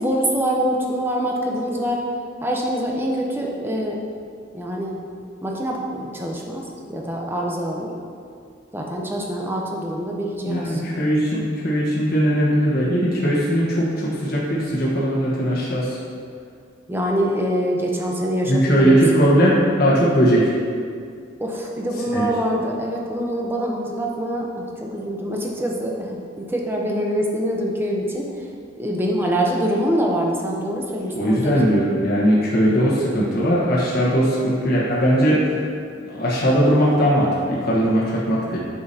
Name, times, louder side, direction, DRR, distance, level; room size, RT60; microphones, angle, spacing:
voice 1, 0.0-2.0 2.4-4.0 4.5-5.0 5.4-6.6 6.9-7.9 8.7-10.8 16.9-19.0 21.4-28.5 28.7-31.5, equal, 10° right, -1 dB, 0.7 m, -24 dB
voice 2, 10.4-16.0 18.5-20.5 22.1-22.2 31.1-35.5 36.1-38.6, equal, 50° left, -7 dB, 1.2 m, -19 dB
8.3 x 6.0 x 2.8 m, 2.2 s
head